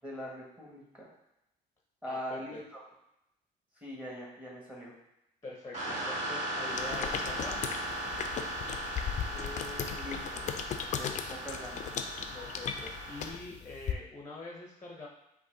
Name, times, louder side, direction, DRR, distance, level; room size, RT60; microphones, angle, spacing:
voice 1, 0.0-1.1 2.0-2.8 3.7-4.9 9.3-10.5 11.0-11.9, equal, 10° right, -3 dB, 1.4 m, -42 dB
voice 2, 2.1-2.6 5.4-7.6 12.3-15.1, left 2 dB, 15° left, 0 dB, 0.7 m, -44 dB
sound 1, 5.7-13.3, right 1 dB, 45° right, 1.6 m, -37 dB
sound 2, 6.7-13.9, left 8 dB, 45° left, 0.4 m, -37 dB
5.3 x 2.6 x 3.8 m, 0.85 s
cardioid pair, 110°, 17 cm